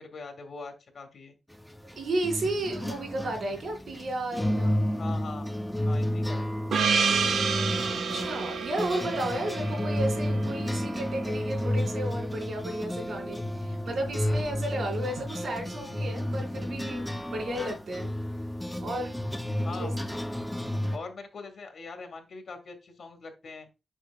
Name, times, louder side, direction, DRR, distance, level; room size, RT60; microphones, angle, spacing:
voice 1, 0.0-1.4 4.9-5.5 5.8-6.5 17.3-17.6 19.6-19.9 20.9-23.7, left 4 dB, 50° left, 1.9 m, -42 dB
sound 1, 1.5-21.0, left 1 dB, 5° left, 0.6 m, -31 dB
voice 2, 2.0-4.8 8.1-18.1 18.8-19.1 19.8-19.9, right 1 dB, 65° right, 3.2 m, -33 dB
Gong, 6.7-11.5, right 5 dB, 80° right, 1.1 m, -29 dB
7.6 x 6.4 x 2.3 m
wide cardioid pair, 160°, 0 cm